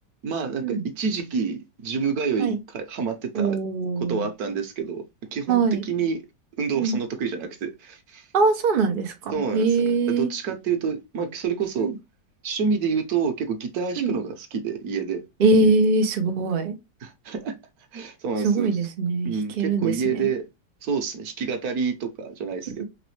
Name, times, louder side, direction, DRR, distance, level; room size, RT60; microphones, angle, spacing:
voice 1, 0.2-3.5 4.1-5.0 5.3-6.2 6.6-8.2 9.3-9.9 10.2-11.9 12.4-15.2 17.0-17.5 17.9-18.7 19.2-20.4 20.8-22.8, right 5 dB, 60° right, 1.2 m, -28 dB
voice 2, 3.3-4.3 5.5-5.8 6.7-7.0 8.3-10.3 11.8-11.9 14.0-14.1 15.4-16.7 18.4-20.3 22.8-22.9, right 3 dB, 85° right, 0.4 m, -22 dB
4.0 x 3.1 x 3.1 m
omnidirectional pair, 2.1 m